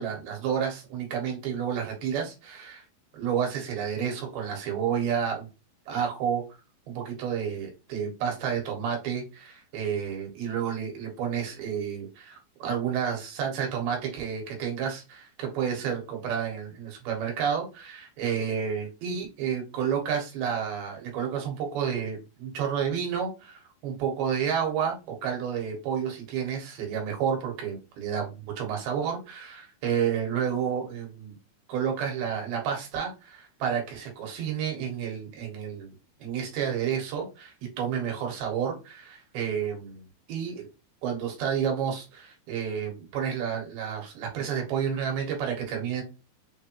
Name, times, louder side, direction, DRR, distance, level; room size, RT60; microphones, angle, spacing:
voice 1, 0.0-2.8 3.1-5.5 5.9-6.4 6.9-31.3 31.7-35.9 36.2-40.7 41.0-46.0, right 7 dB, 90° right, 1 dB, 3.3 m, -30 dB
6.4 x 2.6 x 2.9 m, 0.29 s
omnidirectional pair, 4.2 m